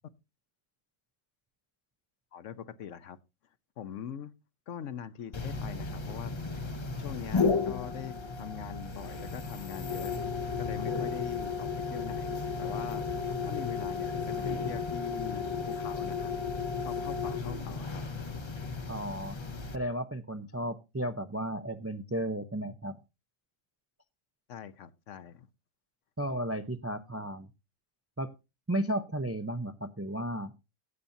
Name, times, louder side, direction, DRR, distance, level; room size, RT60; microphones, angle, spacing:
voice 1, 2.3-3.2 3.8-4.3 4.7-6.3 7.0-10.2 10.6-13.0 13.4-16.3 16.8-18.0 24.5-25.5, left 9 dB, 70° left, 1.1 m, -42 dB
sound 1, 5.3-19.8, left 5 dB, 25° left, 0.6 m, -34 dB
voice 2, 18.8-19.4 19.7-23.0 26.2-27.5 28.2-28.3 28.7-30.5, right 1 dB, 25° right, 0.3 m, -34 dB
16.0 x 7.1 x 2.7 m
omnidirectional pair, 1.4 m